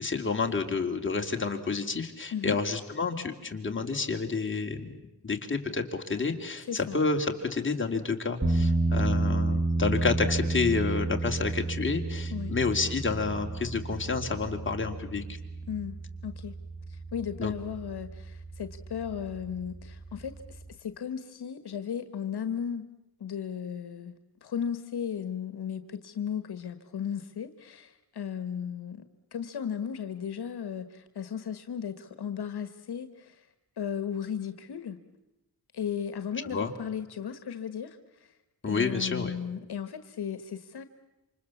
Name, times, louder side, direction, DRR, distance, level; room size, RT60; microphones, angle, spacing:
voice 1, 0.0-4.9 5.2-15.2 17.4-17.5 36.5-36.7 38.6-39.3, left 4 dB, 30° left, 3 dB, 2.9 m, -29 dB
sound 1, 8.4-20.7, right 2 dB, 15° right, 2.1 m, -32 dB
voice 2, 16.2-16.5 16.9-22.8 23.2-24.1 24.4-29.0 29.3-33.5 33.8-35.0 35.7-38.3 38.7-40.8, left 8 dB, 80° left, 11 dB, 1.4 m, -35 dB
28.0 x 26.0 x 7.2 m, 0.98 s
wide cardioid pair, 90°, 39 cm